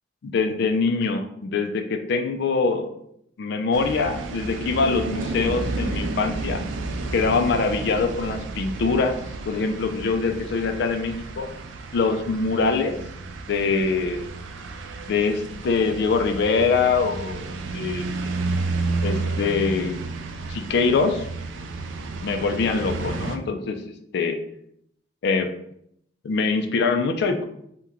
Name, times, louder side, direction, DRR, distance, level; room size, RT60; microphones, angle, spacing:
voice 1, 0.2-2.9 3.4-6.6 7.1-9.2 9.5-11.5 11.9-13.0 13.5-14.3 15.1-17.5 17.7-18.1 19.0-20.0 20.5-21.3 22.2-23.8 24.1-24.4 25.2-25.5 26.2-27.4, left 4 dB, 60° left, 6 dB, 0.3 m, -23 dB
sound 1, 3.7-23.4, right 3 dB, 75° right, 0.4 m, -31 dB
2.9 x 2.1 x 3.6 m, 0.72 s
head